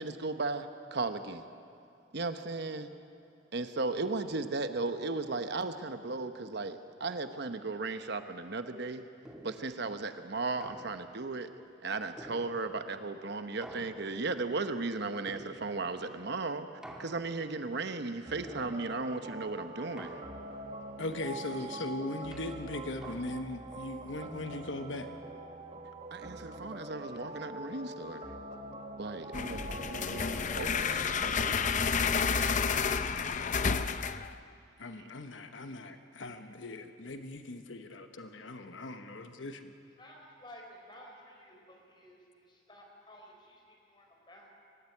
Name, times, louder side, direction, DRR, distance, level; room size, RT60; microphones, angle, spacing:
voice 1, 0.0-1.4 2.1-2.9 3.5-9.0 9.4-11.5 11.8-16.7 17.0-20.1 26.1-28.2 29.0-31.6, right 3 dB, 60° right, 9 dB, 1.0 m, -36 dB
sound 1, 9.2-9.8 10.6-11.3 12.2-12.9 13.6-14.4 15.3-16.0 16.8-17.6 18.4-19.1 20.0-20.7 21.6-23.6, right 1 dB, 5° right, 2.3 m, -50 dB
sound 2, 18.3-31.2, right 1 dB, 30° right, 1.2 m, -44 dB
voice 2, 21.0-25.1 34.8-39.6, left 2 dB, 70° left, 7 dB, 1.0 m, -39 dB
sound 3, 29.3-34.3, left 5 dB, 40° left, 0.6 m, -30 dB
voice 3, 40.0-44.5, equal, 25° left, 1 dB, 4.0 m, -54 dB
24.0 x 13.5 x 9.8 m, 2.4 s
head